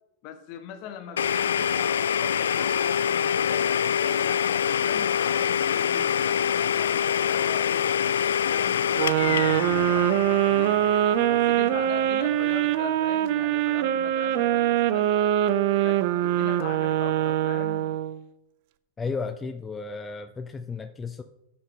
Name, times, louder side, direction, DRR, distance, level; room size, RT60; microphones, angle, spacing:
voice 1, 0.2-7.9 8.5-10.8 11.3-15.4 15.7-17.9, left 8 dB, 50° left, 7 dB, 1.4 m, -41 dB
Domestic sounds home sounds, 1.2-12.8, left 8 dB, 90° left, 0.3 m, -26 dB
sound 1, 8.9-18.2, right 12 dB, 55° right, 0.6 m, -23 dB
voice 2, 19.0-21.2, left 4 dB, 15° left, 7 dB, 0.5 m, -33 dB
9.8 x 7.7 x 3.8 m, 0.88 s
hypercardioid pair, 130°, 0 cm